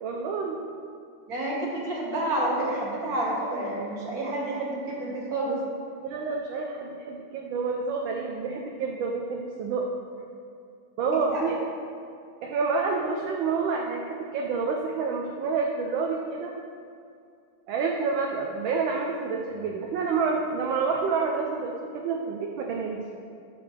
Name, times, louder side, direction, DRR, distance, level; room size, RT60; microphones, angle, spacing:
voice 1, 0.0-0.6 6.0-9.9 11.0-11.6 12.4-16.5 17.7-23.0, right 4 dB, 70° right, 0 dB, 1.4 m, -28 dB
voice 2, 1.3-5.6 11.3-11.4, right 1 dB, 45° right, -4 dB, 2.3 m, -29 dB
13.5 x 6.8 x 3.4 m, 2.4 s
omnidirectional pair, 2.3 m